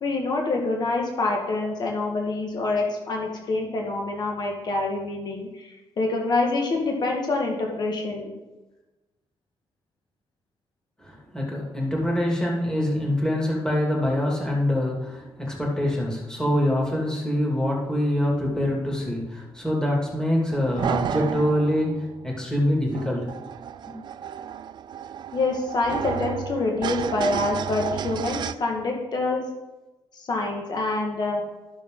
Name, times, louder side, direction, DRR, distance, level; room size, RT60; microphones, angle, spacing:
voice 1, 0.0-8.3 25.3-29.4 30.1-31.4, left 3 dB, 50° left, 0 dB, 1.6 m, -26 dB
voice 2, 11.0-23.3 23.9-24.0, left 1 dB, 10° left, -2 dB, 2.3 m, -25 dB
sound 1, 20.5-28.5, right 8 dB, 55° right, 0.4 m, -32 dB
13.5 x 6.1 x 3.8 m, 1.1 s
cardioid pair, 135°, 9 cm